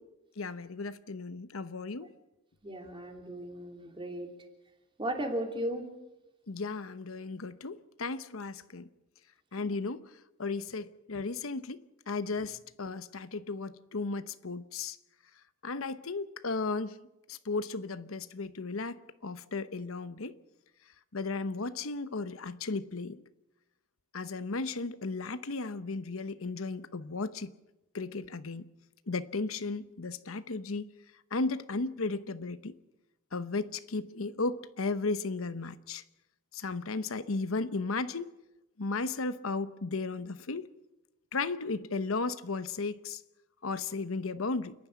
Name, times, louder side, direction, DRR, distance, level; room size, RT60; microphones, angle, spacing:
voice 1, 0.4-2.1 6.5-8.9 9.5-10.1 10.4-15.0 15.6-17.0 17.3-20.3 21.1-23.2 24.1-27.5 27.9-28.6 29.1-30.9 31.3-32.8 33.3-36.0 36.5-38.3 38.8-40.7 41.3-43.2 43.6-44.7, left 3 dB, 75° left, 0.9 m, -35 dB
voice 2, 2.6-4.3 5.0-5.9 9.6-9.7, right 1 dB, 25° right, 2.9 m, -36 dB
29.0 x 11.0 x 9.4 m
head